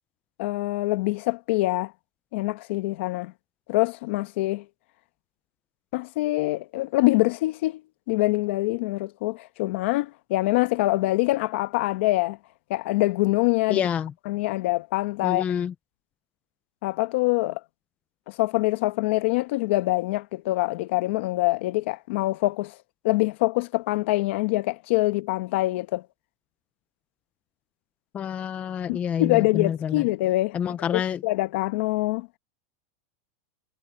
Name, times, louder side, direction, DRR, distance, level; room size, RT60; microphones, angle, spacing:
voice 1, 0.4-1.9 2.3-3.3 3.7-4.6 5.9-7.8 8.1-12.4 12.7-13.8 14.3-15.4 16.8-17.6 18.3-22.8 23.0-26.0 28.9-32.3, left 19 dB, 55° left, 1.0 m, -25 dB
voice 2, 13.7-14.1 15.2-15.7 28.1-30.0 30.5-31.2, left 8 dB, 15° left, 0.5 m, -28 dB
supercardioid pair, 170°, 8 cm